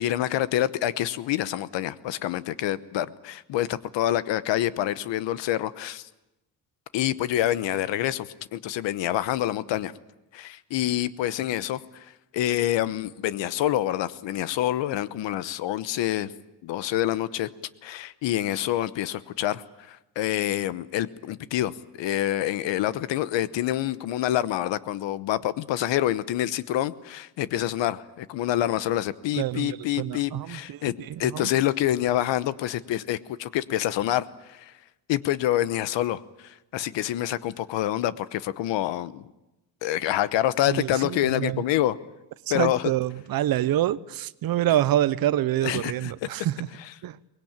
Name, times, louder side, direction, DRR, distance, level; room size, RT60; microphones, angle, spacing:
voice 1, 0.0-6.1 6.9-9.9 10.3-12.1 12.3-16.3 16.6-17.5 17.8-34.7 35.1-39.2 39.8-42.0 42.5-42.9 45.6-46.1 46.8-46.9, left 13 dB, 90° left, 1.1 m, -27 dB
voice 2, 29.3-30.8 31.1-31.5 40.7-41.6 42.5-46.7 47.0-47.2, right 13 dB, 55° right, 0.8 m, -26 dB
23.5 x 20.0 x 8.9 m
cardioid pair, 160°, 43 cm